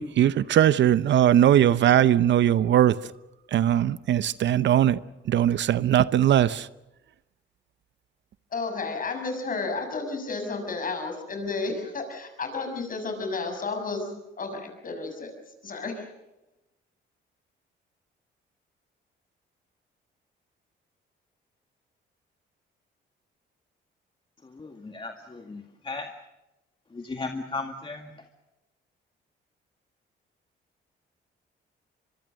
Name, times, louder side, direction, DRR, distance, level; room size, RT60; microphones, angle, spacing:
voice 1, 0.0-3.0 3.5-5.0 5.3-6.7, right 11 dB, 65° right, 0.8 m, -20 dB
voice 2, 8.5-14.1 14.4-16.1, left 3 dB, 45° left, 6.6 m, -32 dB
voice 3, 24.5-26.1 26.9-28.1, left 3 dB, 25° left, 2.0 m, -36 dB
25.0 x 23.0 x 6.5 m
cardioid pair, 90°, 20 cm